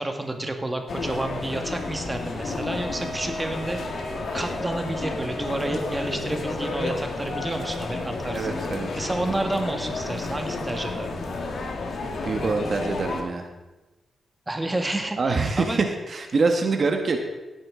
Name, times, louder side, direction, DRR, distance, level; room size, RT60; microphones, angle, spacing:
voice 1, 0.0-3.8 4.3-8.6 9.0-11.2 14.5-15.8, right 1 dB, 20° right, 4 dB, 1.7 m, -30 dB
sound 1, 0.9-13.2, left 3 dB, 70° left, 1.6 m, -31 dB
Wind instrument woodwind instrument, 2.7-6.5, right 2 dB, 35° right, 2.5 m, -39 dB
voice 2, 8.3-8.9 12.2-13.5 15.2-17.2, right 4 dB, 50° right, 4 dB, 1.3 m, -25 dB
16.5 x 8.9 x 3.8 m, 1.1 s
cardioid pair, 80°, 0 cm